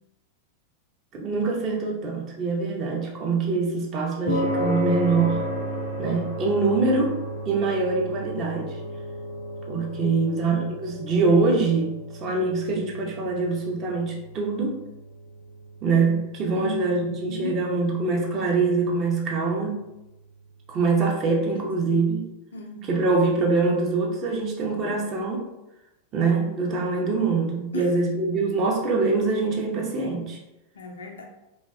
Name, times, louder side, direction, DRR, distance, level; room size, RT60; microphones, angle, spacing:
voice 1, 1.1-5.4 6.0-7.2 7.4-8.8 9.7-11.9 12.2-14.7 15.8-19.8 20.7-22.2 22.9-25.5 26.1-30.4, right 3 dB, 35° right, -1 dB, 0.5 m, -24 dB
sound 1, 4.3-20.8, equal, 90° right, 0.7 m, -34 dB
voice 2, 16.5-17.6 21.2-22.0 22.5-23.4 27.7-27.9 30.7-31.2, right 1 dB, 70° left, 2 dB, 0.4 m, -38 dB
2.6 x 2.1 x 2.3 m, 0.95 s
figure-of-eight pair, 90°, 0 cm